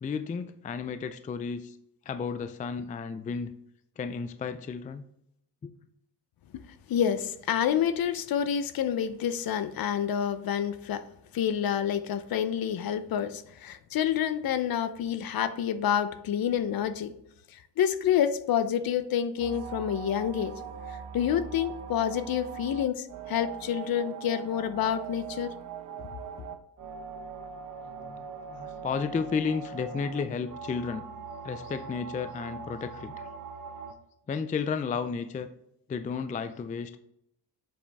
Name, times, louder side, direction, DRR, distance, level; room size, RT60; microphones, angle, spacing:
voice 1, 0.0-1.8 2.1-3.5 4.0-5.0 5.6-5.7 28.0-31.0 31.4-33.3 34.3-35.5 35.9-37.0, left 5 dB, 20° left, 10 dB, 0.3 m, -33 dB
voice 2, 6.9-11.0 11.3-17.1 17.8-20.5 20.9-25.5, left 9 dB, 55° left, 12 dB, 0.7 m, -28 dB
sound 1, 19.4-33.9, right 6 dB, 45° right, 0.9 m, -41 dB
7.3 x 5.1 x 3.5 m, 0.77 s
cardioid pair, 100°, 44 cm